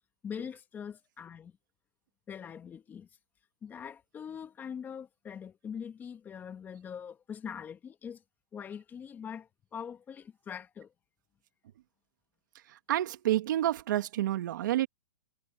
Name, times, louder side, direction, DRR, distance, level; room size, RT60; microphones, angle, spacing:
voice 1, 0.2-1.5 2.3-3.1 3.6-8.2 8.5-10.9, left 7 dB, 15° left, 1.7 m, -42 dB
voice 2, 12.7-14.9, right 13 dB, 65° right, 2.2 m, -29 dB
hypercardioid pair, 145°, 11 cm